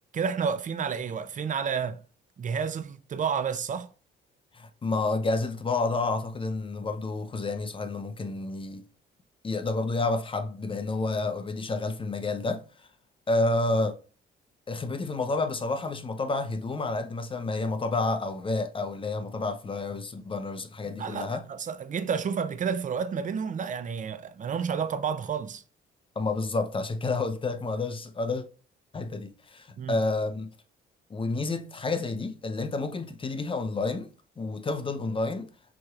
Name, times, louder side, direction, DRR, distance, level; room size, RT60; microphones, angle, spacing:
voice 1, 0.1-2.0 2.4-3.9 21.0-25.6 29.8-30.0, right 6 dB, 40° right, 0.5 m, -30 dB
voice 2, 4.5-8.8 9.4-12.6 13.3-13.9 14.7-21.4 26.2-28.4 28.9-30.5 31.1-34.1 34.4-35.5, left 3 dB, 25° left, 0.6 m, -29 dB
6.0 x 3.0 x 2.4 m
cardioid pair, 90°, 20 cm